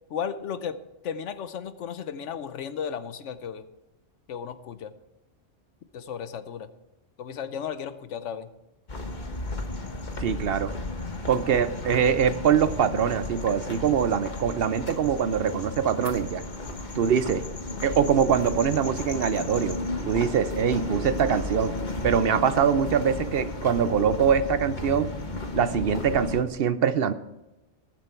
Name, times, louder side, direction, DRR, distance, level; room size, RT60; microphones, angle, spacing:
voice 1, 0.1-3.7 4.3-4.9 5.9-6.7 7.2-8.5, left 7 dB, 90° left, 12 dB, 1.1 m, -34 dB
sound 1, 8.9-26.4, left 2 dB, 40° left, 1.4 m, -34 dB
voice 2, 10.2-10.7 11.3-16.4 16.9-17.4 17.8-19.8 20.1-21.8 22.0-25.1 25.5-27.1, right 7 dB, 60° right, 13 dB, 0.8 m, -23 dB
20.5 x 7.5 x 4.5 m, 0.96 s
omnidirectional pair, 1.2 m